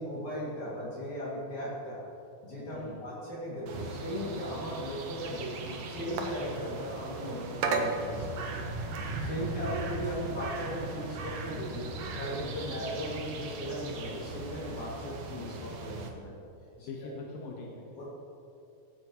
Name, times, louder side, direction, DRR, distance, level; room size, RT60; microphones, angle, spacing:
voice 1, 0.0-2.0 2.4-8.5 9.2-16.3 16.8-16.9 18.0-18.1, equal, 60° left, -8 dB, 3.7 m, -37 dB
voice 2, 2.7-3.0 9.3-9.9 12.6-12.9 15.0-15.2 16.8-17.8, left 3 dB, 80° left, -2 dB, 3.0 m, -43 dB
sound 1, 3.7-16.1, right 3 dB, 65° right, 2.3 m, -37 dB
17.0 x 16.0 x 3.1 m, 2.7 s
omnidirectional pair, 3.9 m